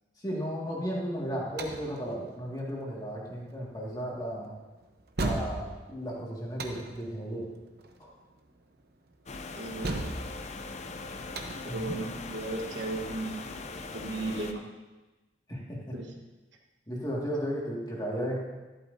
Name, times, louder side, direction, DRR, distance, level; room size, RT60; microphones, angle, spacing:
voice 1, 0.2-4.5 5.2-7.4 8.0-8.1 11.7-12.0 15.5-15.8 16.9-18.4, equal, 20° left, -3 dB, 1.9 m, -34 dB
sound 1, 1.0-14.3, right 2 dB, 55° right, 0.9 m, -39 dB
sound 2, 9.3-14.5, left 3 dB, 35° left, 0.6 m, -40 dB
voice 2, 9.5-10.1 11.6-13.4 13.9-14.6 15.9-16.2, right 2 dB, 70° right, 1 dB, 1.3 m, -35 dB
11.5 x 11.5 x 2.7 m, 1.1 s
head